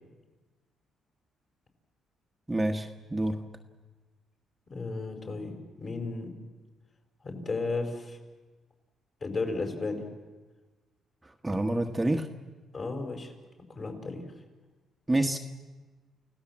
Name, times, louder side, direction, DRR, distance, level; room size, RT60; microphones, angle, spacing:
voice 1, 2.5-3.4 11.2-12.3 15.1-15.4, right 1 dB, 15° right, 3 dB, 1.4 m, -28 dB
voice 2, 4.7-6.3 7.2-8.2 9.2-10.0 12.7-13.3 13.7-14.2, left 3 dB, 40° left, 4 dB, 5.3 m, -34 dB
30.0 x 17.0 x 7.5 m, 1.3 s
cardioid pair, 90°, 0 cm